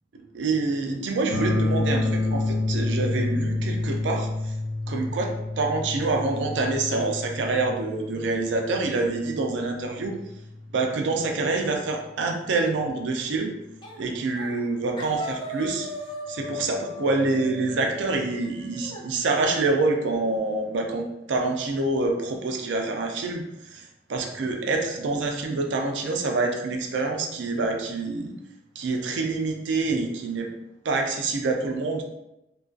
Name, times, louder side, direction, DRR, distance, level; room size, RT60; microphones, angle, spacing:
voice 1, 0.3-4.6 4.9-10.2 10.7-13.6 14.0-15.9 16.3-28.3 28.8-30.5 30.8-32.0, right 3 dB, 70° right, 3 dB, 0.4 m, -26 dB
sound 1, 1.3-11.2, left 2 dB, 85° left, 0.4 m, -29 dB
sound 2, 13.8-14.1 14.3-14.7 15.0-19.0, left 1 dB, 25° left, 0.4 m, -37 dB
2.4 x 2.2 x 2.4 m, 0.88 s
head